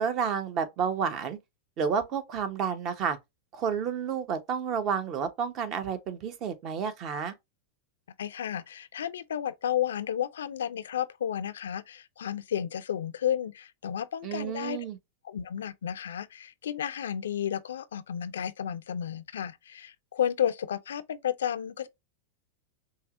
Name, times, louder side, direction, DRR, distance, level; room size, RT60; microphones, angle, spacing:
voice 1, 0.0-1.4 1.8-3.2 3.5-7.3 14.2-15.0, right 7 dB, 45° right, 0.9 m, -30 dB
voice 2, 8.2-14.8 15.2-21.9, left 9 dB, 85° left, 0.4 m, -32 dB
5.4 x 2.1 x 2.5 m
hypercardioid pair, 105°, 0 cm